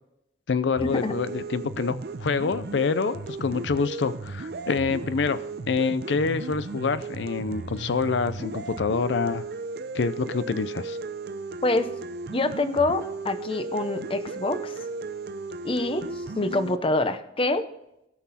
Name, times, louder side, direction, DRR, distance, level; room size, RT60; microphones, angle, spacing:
voice 1, 0.5-9.4 9.9-11.0, left 5 dB, 85° left, 14 dB, 0.5 m, -26 dB
sound 1, 0.8-16.8, right 3 dB, 60° right, 0.6 m, -35 dB
voice 2, 12.3-14.7 15.6-17.6, left 2 dB, 30° left, 10 dB, 0.8 m, -26 dB
18.0 x 6.1 x 4.2 m, 0.84 s
head